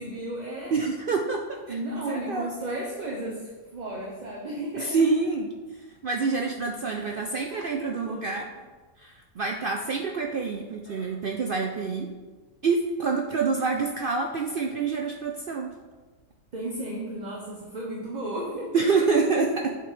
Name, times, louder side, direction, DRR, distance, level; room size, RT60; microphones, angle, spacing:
voice 1, 0.0-0.8 1.7-5.1 6.9-8.4 10.9-11.2 16.5-19.2, right 1 dB, 35° right, -3 dB, 0.9 m, -35 dB
voice 2, 0.7-1.8 2.1-2.5 4.8-5.5 6.0-8.5 9.0-12.1 12.6-15.7 18.7-19.8, right 4 dB, 70° right, 2 dB, 0.5 m, -27 dB
7.7 x 4.5 x 5.0 m, 1.3 s
omnidirectional pair, 1.5 m